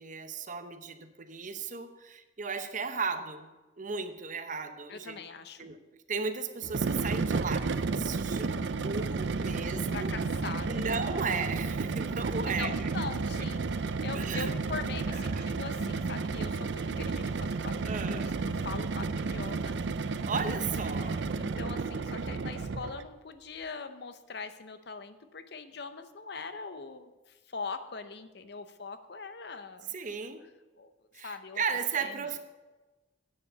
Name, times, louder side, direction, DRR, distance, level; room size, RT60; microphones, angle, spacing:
voice 1, 0.0-3.5 3.8-5.2 5.6-5.8 6.1-10.1 10.7-12.9 13.4-13.5 14.1-14.5 15.1-15.5 17.8-18.3 20.3-21.3 29.9-30.5 31.1-32.4, right 5 dB, 45° right, 8 dB, 0.8 m, -35 dB
voice 2, 4.9-5.7 9.4-9.5 9.9-10.9 12.4-20.3 20.6-29.9 30.8-31.6 32.0-32.2, left 4 dB, 60° left, 10 dB, 0.8 m, -42 dB
sound 1, 6.6-23.1, right 4 dB, 65° right, 0.5 m, -32 dB
9.8 x 6.9 x 6.6 m, 1.2 s
head